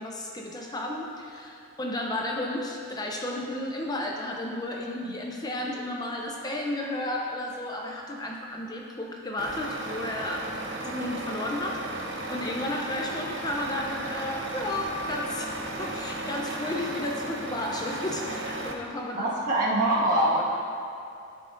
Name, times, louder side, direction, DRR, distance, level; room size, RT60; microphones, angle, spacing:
voice 1, 0.0-10.5 10.8-19.3, left 1 dB, 20° left, -1 dB, 0.5 m, -33 dB
Truck, 9.4-18.7, right 2 dB, 60° right, 0.8 m, -35 dB
voice 2, 19.1-20.4, right 1 dB, 40° right, -6 dB, 1.6 m, -24 dB
13.5 x 5.6 x 2.6 m, 2.6 s
head